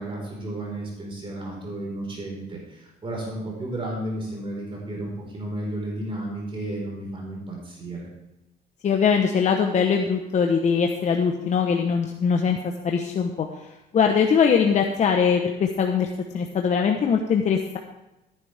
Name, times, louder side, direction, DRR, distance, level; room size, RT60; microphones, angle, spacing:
voice 1, 0.0-8.1, right 1 dB, 30° right, -2 dB, 4.5 m, -33 dB
voice 2, 8.8-12.6 12.8-13.5 13.9-16.1 16.3-17.8, left 6 dB, 45° left, 3 dB, 1.0 m, -21 dB
14.0 x 10.5 x 3.5 m, 0.92 s
cardioid pair, 110°, 17 cm